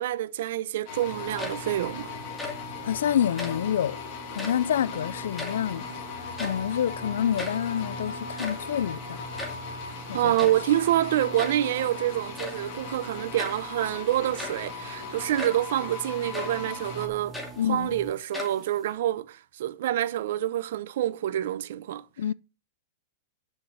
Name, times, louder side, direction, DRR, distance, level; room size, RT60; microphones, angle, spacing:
voice 1, 0.0-2.1 10.1-22.0, right 13 dB, 60° right, 0.8 m, -27 dB
sound 1, 0.9-17.1, left 5 dB, 40° left, 3.0 m, -39 dB
sound 2, 1.1-18.1, right 5 dB, 15° right, 1.1 m, -45 dB
sound 3, 1.2-1.9 2.2-2.7 3.3-3.7 4.3-4.7 5.1-5.9 6.2-6.8 7.1-7.2 7.4-7.7 8.2-9.7 10.4-10.7 11.4-11.7 12.4-12.7 13.4-13.7 14.2-14.7 15.4-15.7 16.3-16.6 17.1-17.9 18.3-18.9, left 2 dB, 5° left, 2.0 m, -38 dB
voice 2, 2.8-4.0 4.3-5.9 6.4-9.2 10.1-10.3 17.6-17.9 22.2-22.3, left 9 dB, 85° left, 0.4 m, -27 dB
9.9 x 6.3 x 6.3 m
supercardioid pair, 160°, 0 cm